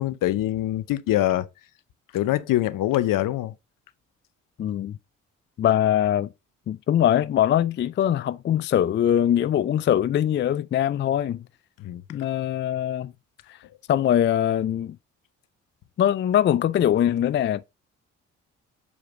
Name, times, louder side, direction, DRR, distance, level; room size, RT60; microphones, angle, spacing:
voice 1, 0.0-1.5 2.1-3.5 11.8-12.0, left 14 dB, 65° left, 0.7 m, -24 dB
voice 2, 4.6-5.0 5.6-6.3 6.7-11.4 12.1-13.1 13.9-15.0 16.0-17.6, left 10 dB, 35° left, 0.4 m, -22 dB
7.0 x 4.7 x 3.6 m
hypercardioid pair, 50°, 35 cm